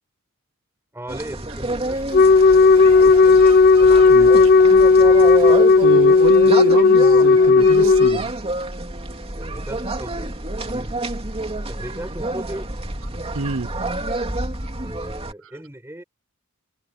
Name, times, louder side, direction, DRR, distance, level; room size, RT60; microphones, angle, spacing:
voice 1, 0.9-3.5 3.8-4.2 9.4-10.3 10.6-11.0 11.7-12.9 14.8-16.0, right 1 dB, 10° right, 6.9 m, -37 dB
sound 1, 1.1-15.3, right 2 dB, 30° right, 2.8 m, -29 dB
Wind instrument woodwind instrument, 2.1-8.2, left 4 dB, 45° left, 0.7 m, -12 dB
voice 2, 4.1-4.5 5.8-8.3 13.3-13.7, right 3 dB, 65° right, 0.7 m, -25 dB
head